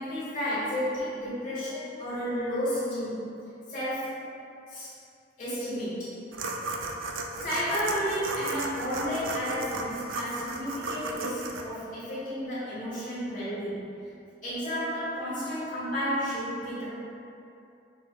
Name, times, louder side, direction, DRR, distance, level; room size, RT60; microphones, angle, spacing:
voice 1, 0.0-3.3 3.7-4.2 4.7-4.9 5.4-6.1 7.4-13.9 14.4-16.9, equal, 40° left, -11 dB, 1.3 m, -32 dB
sound 1, 6.3-11.6, right 3 dB, 80° right, 0.4 m, -34 dB
5.5 x 3.1 x 2.2 m, 2.6 s
head